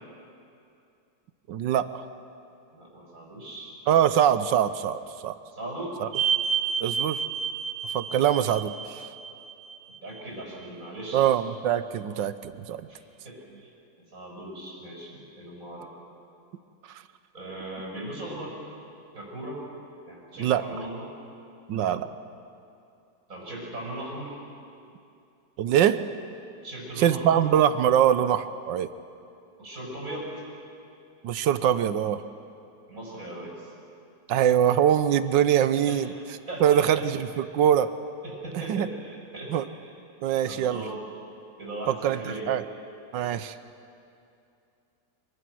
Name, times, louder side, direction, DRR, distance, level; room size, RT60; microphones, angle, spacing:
voice 1, 1.5-2.0 3.9-5.4 6.0-6.1 6.8-7.2 7.9-9.0 11.1-12.9 20.4-20.6 21.7-22.1 25.6-26.0 27.0-28.9 31.2-32.2 34.3-36.1 36.6-37.9 38.7-38.9 39.5-39.6 40.2-40.8 41.9-42.6 43.1-43.5, right 10 dB, 85° right, 13 dB, 1.5 m, -23 dB
voice 2, 2.7-3.8 5.5-6.0 10.0-11.3 12.9-13.7 14.1-15.9 17.3-18.6 19.1-19.6 20.1-21.1 21.7-22.0 23.3-24.4 26.6-27.5 29.6-30.4 32.9-33.7 35.9-36.1 36.5-37.0 37.3-37.5 38.2-39.9 40.5-41.0 41.6-42.5, right 1 dB, 45° right, -3 dB, 6.3 m, -38 dB
sound 1, 6.1-10.2 10.6-10.7 13.6-13.7, right 7 dB, 65° right, 0.7 m, -30 dB
25.0 x 23.5 x 6.2 m, 2.6 s
omnidirectional pair, 2.0 m